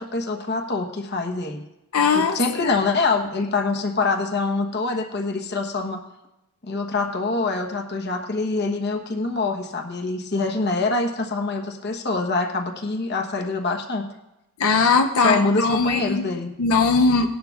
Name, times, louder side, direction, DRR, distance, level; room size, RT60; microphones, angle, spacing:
voice 1, 0.0-1.6 2.1-6.0 6.6-14.1 15.2-16.5, left 3 dB, 50° left, 3 dB, 1.1 m, -25 dB
voice 2, 1.9-2.8 14.6-16.3 16.6-17.4, left 4 dB, 85° left, 4 dB, 0.6 m, -20 dB
18.5 x 11.0 x 2.4 m, 0.95 s
head